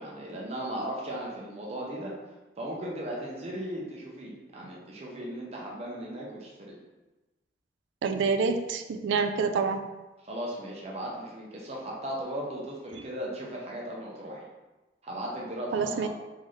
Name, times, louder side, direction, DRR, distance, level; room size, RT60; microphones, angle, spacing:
voice 1, 0.0-2.1 2.6-6.8 10.2-14.5 15.0-16.1, right 1 dB, 35° right, -3 dB, 0.7 m, -37 dB
voice 2, 8.0-9.8 15.7-16.1, right 5 dB, 85° right, 7 dB, 0.3 m, -27 dB
3.8 x 2.7 x 3.2 m, 1.1 s
head